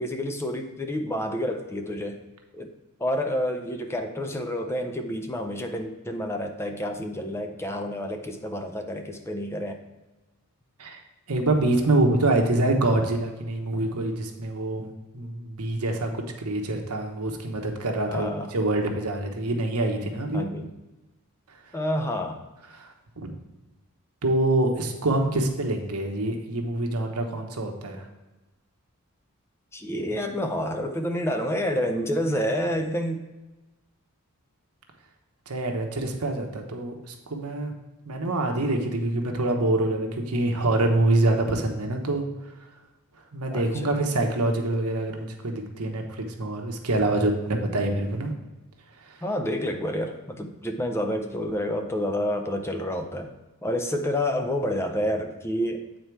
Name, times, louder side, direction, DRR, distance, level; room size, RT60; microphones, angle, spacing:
voice 1, 0.0-2.2 2.5-2.7 3.0-9.8 18.1-18.5 20.3-20.7 21.7-22.4 29.7-33.3 43.5-43.9 49.2-53.3 53.6-55.8, equal, 10° left, 5 dB, 0.5 m, -29 dB
voice 2, 11.3-14.9 15.1-20.4 22.7-23.3 24.2-28.0 35.5-37.7 38.1-42.2 43.3-48.3 49.0-49.2, right 2 dB, 85° right, 3 dB, 1.1 m, -25 dB
8.3 x 4.3 x 4.6 m, 1.1 s
head